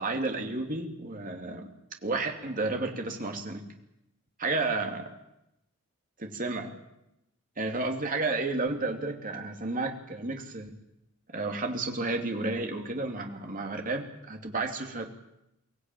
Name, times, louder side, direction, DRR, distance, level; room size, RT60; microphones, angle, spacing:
voice 1, 0.0-1.7 2.0-3.6 4.4-5.1 6.2-6.7 7.6-10.7 11.3-15.1, right 3 dB, 40° right, 3 dB, 2.7 m, -32 dB
23.5 x 16.5 x 9.2 m, 0.85 s
head